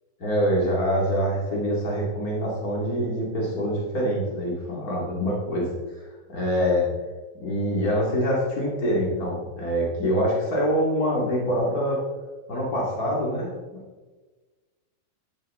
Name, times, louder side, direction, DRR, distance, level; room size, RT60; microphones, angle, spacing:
voice 1, 0.2-6.9 7.4-12.0 12.5-13.5, equal, 80° left, -3 dB, 0.8 m, -25 dB
12.0 x 12.0 x 3.7 m, 1.3 s
omnidirectional pair, 5.9 m